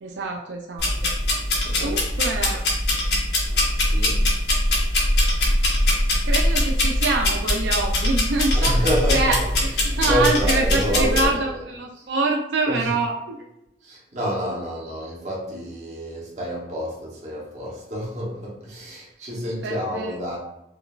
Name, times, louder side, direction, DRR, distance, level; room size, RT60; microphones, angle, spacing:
voice 1, 0.0-1.1 1.8-2.6 6.2-8.9 9.1-13.4 19.6-20.2, right 3 dB, 85° right, 1 dB, 0.4 m, -25 dB
sound 1, 0.8-11.3, left 1 dB, 65° left, 1.0 m, -22 dB
voice 2, 1.6-2.0 3.8-4.2 8.5-9.4 10.0-11.6 12.7-12.9 13.8-20.4, equal, 40° right, -4 dB, 1.0 m, -28 dB
4.9 x 2.3 x 2.4 m, 0.85 s
head